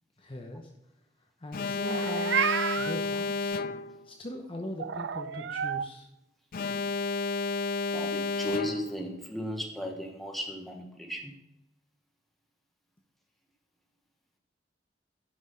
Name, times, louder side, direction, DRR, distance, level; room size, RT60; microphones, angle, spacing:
voice 1, 0.2-0.7 1.4-2.5 2.8-3.6 4.0-6.1, left 1 dB, 30° left, 3 dB, 0.9 m, -40 dB
Alarm, 1.5-4.1 6.5-9.1, left 3 dB, 50° left, 0.4 m, -31 dB
Meow, 1.8-3.0 4.8-5.9, right 7 dB, 75° right, 0.4 m, -30 dB
voice 2, 7.9-11.3, equal, ahead, 1 dB, 1.3 m, -36 dB
9.8 x 6.0 x 5.1 m, 0.84 s
head